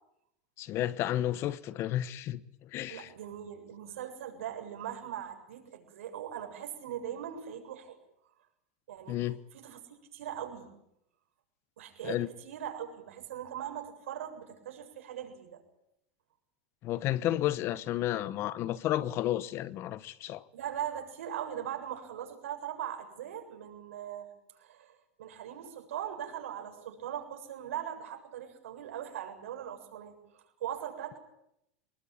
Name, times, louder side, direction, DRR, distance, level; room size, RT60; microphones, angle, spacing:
voice 1, 0.6-3.1 9.1-9.4 12.0-12.3 16.8-20.4, left 13 dB, 35° left, 1.1 m, -32 dB
voice 2, 2.9-8.0 8.9-10.7 11.8-15.6 20.5-24.3 24.6-31.2, right 10 dB, 85° right, 7.3 m, -40 dB
26.0 x 21.0 x 8.9 m
supercardioid pair, 150°, 7 cm